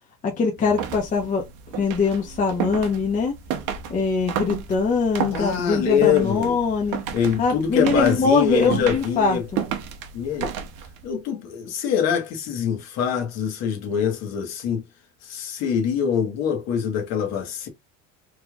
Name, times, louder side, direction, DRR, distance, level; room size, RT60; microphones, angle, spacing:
voice 1, 0.2-1.4 1.7-3.3 3.9-7.0 7.4-9.6, left 4 dB, 25° left, 1.0 m, -22 dB
sound 1, 0.6-11.1, right 8 dB, 75° right, 1.1 m, -32 dB
voice 2, 5.3-6.5 7.1-9.5 10.1-10.5 11.0-14.8 15.2-17.7, left 8 dB, 55° left, 1.5 m, -24 dB
4.5 x 3.3 x 2.4 m
cardioid pair, 155°, 31 cm